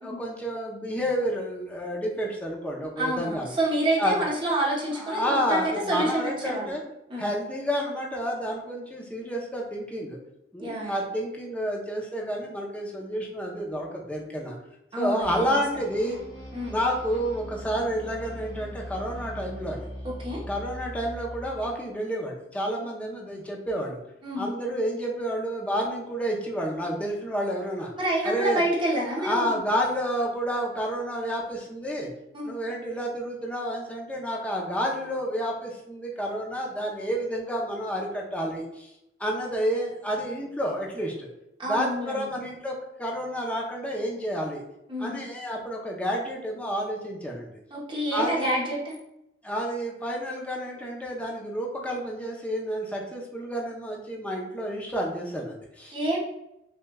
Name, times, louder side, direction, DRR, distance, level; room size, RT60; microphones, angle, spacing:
voice 1, 0.0-3.5 4.0-4.2 4.9-6.8 7.2-10.2 10.5-14.6 15.0-16.2 16.7-19.9 20.5-24.0 24.4-27.9 28.2-28.6 29.1-32.1 32.4-38.9 39.2-41.3 41.7-44.6 45.0-47.6 48.1-48.5 49.4-56.2, equal, 10° left, -2 dB, 0.6 m, -30 dB
voice 2, 3.0-5.6 5.9-6.8 7.1-7.3 10.6-11.0 14.9-15.6 16.5-16.8 20.0-20.4 24.2-24.5 28.0-29.6 32.3-32.5 41.6-42.3 44.9-45.2 47.7-49.0 55.9-56.2, right 1 dB, 25° right, -5 dB, 0.9 m, -28 dB
sound 1, 15.2-21.7, equal, 85° left, 1.5 m, -40 dB
6.1 x 2.3 x 2.2 m, 0.86 s
head